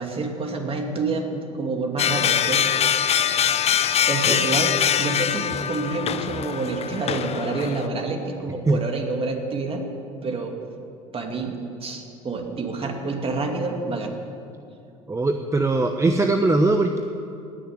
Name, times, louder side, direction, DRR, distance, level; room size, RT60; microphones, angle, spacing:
voice 1, 0.0-3.0 4.1-9.9 10.2-10.5 11.1-11.5 11.8-14.1, right 3 dB, 35° right, 3 dB, 2.6 m, -28 dB
sound 1, 2.0-7.9, left 9 dB, 40° left, 0.7 m, -23 dB
voice 2, 15.1-17.0, right 2 dB, 15° right, 5 dB, 1.0 m, -20 dB
18.0 x 6.9 x 9.6 m, 2.6 s
hypercardioid pair, 70°, 17 cm